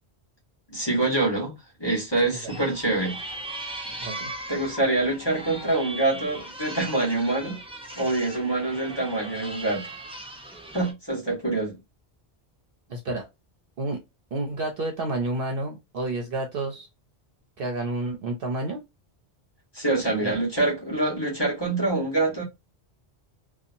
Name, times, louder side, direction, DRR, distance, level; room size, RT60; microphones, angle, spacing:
voice 1, 0.7-1.5 1.8-3.2 4.5-7.6 7.9-9.9 10.7-11.7 19.7-22.4, right 2 dB, 25° left, 1.3 m, -25 dB
sound 1, 2.5-10.9, right 1 dB, 10° right, 0.3 m, -38 dB
voice 2, 12.9-13.3 13.8-14.0 14.3-16.9 17.6-18.8 20.2-20.4, right 2 dB, 60° right, 0.8 m, -30 dB
2.7 x 2.3 x 2.6 m
omnidirectional pair, 1.1 m